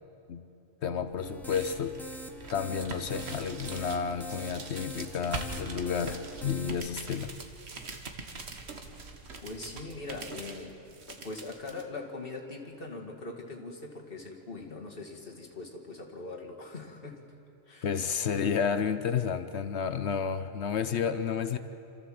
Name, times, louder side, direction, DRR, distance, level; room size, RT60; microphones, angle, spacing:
voice 1, 0.8-1.9 2.5-7.3 17.8-21.6, left 7 dB, 70° left, 11 dB, 1.0 m, -31 dB
sound 1, 1.0-11.8, right 4 dB, 65° right, 1.6 m, -43 dB
sound 2, 1.2-6.7, right 1 dB, ahead, 0.9 m, -44 dB
voice 2, 9.4-17.2 17.7-17.9 18.3-18.6, left 3 dB, 50° left, 0 dB, 2.3 m, -42 dB
27.0 x 14.0 x 7.6 m, 2.8 s
omnidirectional pair, 1.2 m